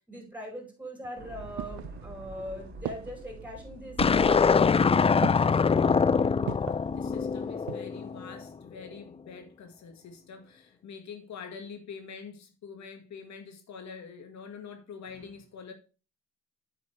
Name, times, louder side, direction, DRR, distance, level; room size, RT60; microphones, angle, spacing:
voice 1, 0.1-4.6 5.0-5.8, equal, 5° right, 4.9 m, -40 dB
sound 1, 1.0-2.4 2.9-3.4 4.0-4.4 5.2-5.7 6.5-6.9 7.4-8.0 8.3-8.4, right 15 dB, 70° right, 0.4 m, -38 dB
sound 2, 1.2-7.4, right 2 dB, 35° right, 2.1 m, -48 dB
sound 3, 4.0-8.4, left 5 dB, 20° left, 0.4 m, -24 dB
voice 2, 6.9-15.7, left 6 dB, 65° left, 1.8 m, -45 dB
8.5 x 6.8 x 3.3 m
cardioid pair, 90°, 30 cm